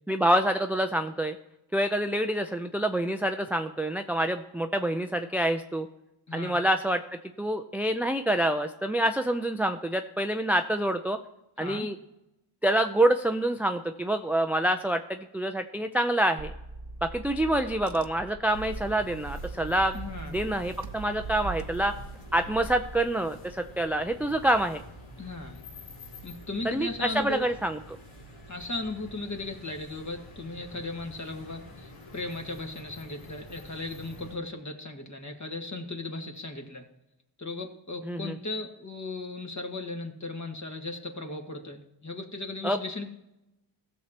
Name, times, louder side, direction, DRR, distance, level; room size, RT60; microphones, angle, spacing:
voice 1, 0.1-1.4 1.7-5.9 6.3-7.0 7.4-11.2 11.6-12.0 12.6-16.5 17.0-20.0 20.3-21.9 22.3-24.8 26.6-27.8 38.0-38.4 42.6-42.8, right 1 dB, 5° right, 7 dB, 0.4 m, -27 dB
voice 2, 6.3-6.6 11.6-11.9 19.9-20.3 25.2-25.6 26.2-27.4 28.5-36.9 37.4-43.1, left 2 dB, 35° left, 4 dB, 1.7 m, -37 dB
Car / Engine, 16.4-23.0, right 3 dB, 35° right, 0.7 m, -41 dB
sound 1, 18.5-34.4, right 2 dB, 70° left, 2.8 m, -46 dB
15.5 x 6.7 x 2.9 m, 0.90 s
cardioid pair, 60°, 49 cm